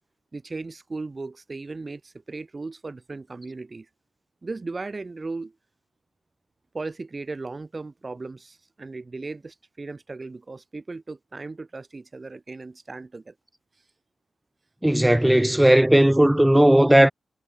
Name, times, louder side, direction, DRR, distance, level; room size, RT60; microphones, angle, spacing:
voice 1, 0.3-3.9 4.4-5.5 6.7-13.3, right 3 dB, 30° right, 6.0 m, -36 dB
voice 2, 14.8-17.1, right 1 dB, 5° right, 1.1 m, -16 dB
wide cardioid pair, 130°, 0 cm